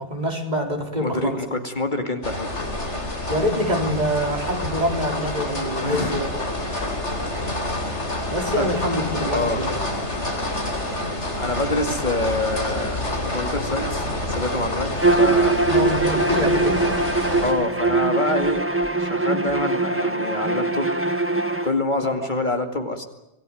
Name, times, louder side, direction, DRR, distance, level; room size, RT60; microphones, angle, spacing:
voice 1, 0.0-1.4 3.3-6.3 8.3-9.8 10.1-10.3 15.7-16.9 22.0-22.1, equal, 40° right, 3 dB, 3.9 m, -25 dB
voice 2, 1.0-2.7 5.8-6.2 8.6-8.7 9.3-9.7 11.4-13.0 13.3-15.6 17.4-18.7 19.0-20.9 21.6-23.0, left 2 dB, 45° left, 5 dB, 2.4 m, -26 dB
sound 1, 2.2-17.5, left 1 dB, 85° left, 4.6 m, -28 dB
Bowed string instrument, 15.0-21.7, right 2 dB, 10° right, 1.2 m, -22 dB
26.5 x 19.5 x 9.1 m, 0.94 s
omnidirectional pair, 1.2 m